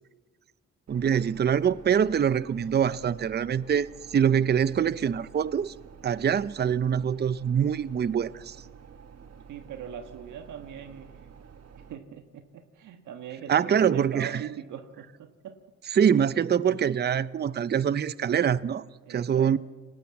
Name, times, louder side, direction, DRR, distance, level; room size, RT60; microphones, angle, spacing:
voice 1, 0.9-5.7 6.0-8.6 13.5-14.4 15.9-19.6, right 8 dB, 35° right, 0.7 m, -24 dB
sound 1, 0.9-11.9, right 7 dB, 60° right, 1.8 m, -50 dB
voice 2, 9.5-11.3 11.9-15.6 19.0-19.6, right 8 dB, 80° right, 1.5 m, -41 dB
25.5 x 19.0 x 7.4 m
cardioid pair, 90°, 30 cm